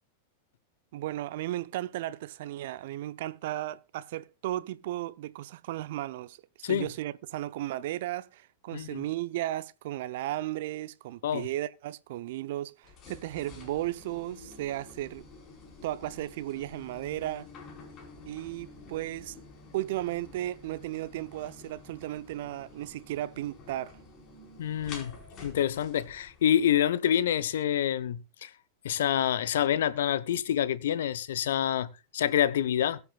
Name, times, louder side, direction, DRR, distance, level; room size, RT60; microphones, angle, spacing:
voice 1, 0.9-15.3 15.8-17.5 18.2-19.4 19.7-23.9, right 14 dB, 60° right, 0.7 m, -35 dB
voice 2, 8.7-9.0 11.2-11.5 24.6-25.1 25.4-28.5 28.8-33.0, left 10 dB, 65° left, 0.9 m, -27 dB
sound 1, 12.8-26.7, left 3 dB, 35° left, 4.7 m, -50 dB
22.0 x 8.1 x 2.4 m
figure-of-eight pair, 95°, 0 cm